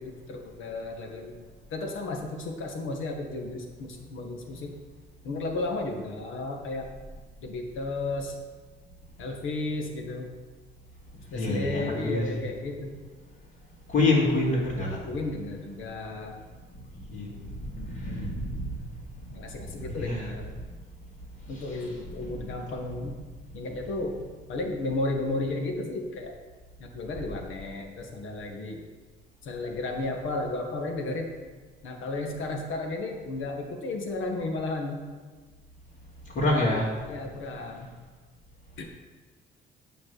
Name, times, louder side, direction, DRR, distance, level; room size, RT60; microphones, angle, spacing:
voice 1, 0.0-1.3 1.7-4.8 5.2-6.9 7.4-8.3 9.2-10.3 11.1-13.0 15.1-16.4 17.7-18.4 19.3-20.5 21.5-23.2 23.5-24.1 24.5-26.3 26.8-28.9 29.4-31.3 31.8-35.1 37.1-37.9 38.8-38.9, left 2 dB, 85° left, 2 dB, 1.7 m, -33 dB
voice 2, 11.3-12.2 13.9-15.0 17.1-17.3 17.7-18.7 19.9-20.2 21.5-21.6 22.2-22.3 36.3-36.9, left 2 dB, 60° left, -10 dB, 3.0 m, -26 dB
9.0 x 6.0 x 6.7 m, 1.4 s
cardioid pair, 90°, 20 cm